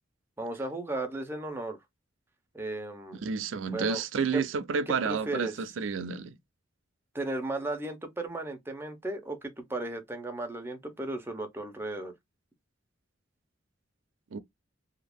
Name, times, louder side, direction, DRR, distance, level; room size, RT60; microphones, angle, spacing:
voice 1, 0.4-1.8 2.5-3.2 3.6-4.0 4.3-4.4 4.9-5.5 7.1-12.1, right 2 dB, 10° right, 0.6 m, -35 dB
voice 2, 3.2-6.4 14.3-14.4, right 5 dB, 90° right, 0.5 m, -30 dB
2.8 x 2.4 x 3.4 m
head